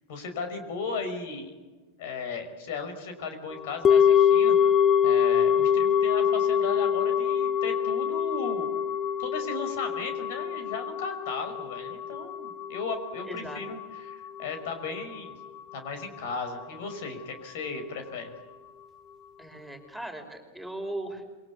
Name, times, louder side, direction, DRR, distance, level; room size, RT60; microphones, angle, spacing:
voice 1, 0.1-1.5 2.0-4.7 5.0-8.7 9.2-15.3 15.7-18.3, left 4 dB, 60° left, 7 dB, 5.7 m, -36 dB
sound 1, 3.8-14.1 14.4-14.5, left 8 dB, 25° left, 1.7 m, -24 dB
voice 2, 13.2-13.6 19.4-21.2, right 1 dB, ahead, 5 dB, 5.3 m, -38 dB
27.5 x 23.5 x 8.6 m, 1.3 s
figure-of-eight pair, 95°, 0 cm